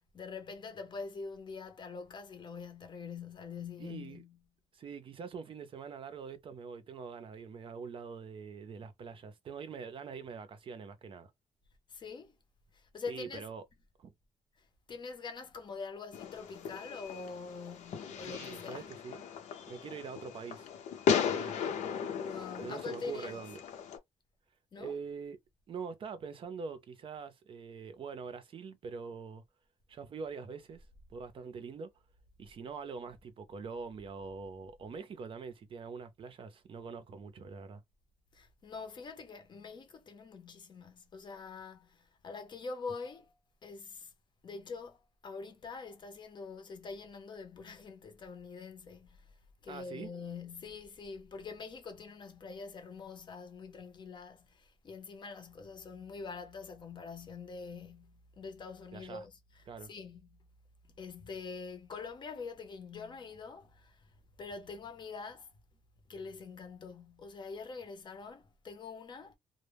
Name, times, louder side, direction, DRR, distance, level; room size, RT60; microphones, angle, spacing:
voice 1, 0.1-4.4 11.9-12.4 12.7-13.4 14.6-18.9 22.1-23.3 24.7-25.0 38.3-43.3 43.6-44.1 44.4-49.3 49.6-60.4 60.8-65.5 66.1-69.4, left 4 dB, 40° left, 0.6 m, -45 dB
voice 2, 3.8-4.2 4.7-11.3 13.1-13.6 14.0-14.1 18.2-19.2 19.7-20.7 21.3-21.6 22.6-23.6 24.8-25.4 25.7-29.4 29.9-31.9 32.4-37.8 49.7-50.1 58.9-59.2 59.7-59.9, right 5 dB, 45° right, 0.5 m, -44 dB
Fireworks, 16.1-24.0, left 7 dB, 80° left, 0.7 m, -36 dB
2.1 x 2.1 x 3.3 m
cardioid pair, 140°, 12 cm